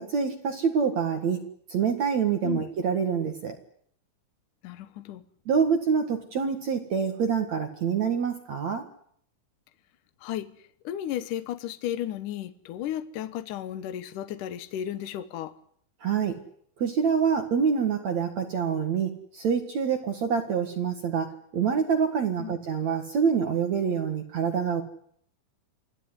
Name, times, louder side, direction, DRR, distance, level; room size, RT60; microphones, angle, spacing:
voice 1, 0.0-1.4 1.7-3.5 5.5-8.8 16.0-16.4 16.8-24.8, right 6 dB, 55° right, 6 dB, 2.1 m, -26 dB
voice 2, 4.6-5.2 10.2-10.5 10.8-15.5 22.4-22.5, left 11 dB, 80° left, 11 dB, 1.8 m, -34 dB
26.5 x 16.5 x 9.8 m, 0.65 s
omnidirectional pair, 5.5 m